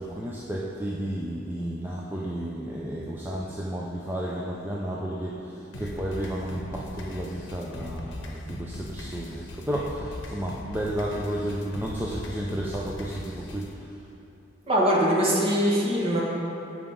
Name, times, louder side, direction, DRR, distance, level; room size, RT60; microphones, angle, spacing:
voice 1, 0.0-13.9, right 1 dB, 10° right, -5 dB, 0.5 m, -32 dB
sound 1, 5.7-13.7, left 1 dB, 70° left, 0.8 m, -39 dB
voice 2, 14.7-16.2, equal, 30° right, -4 dB, 1.3 m, -22 dB
7.9 x 4.8 x 5.3 m, 2.8 s
head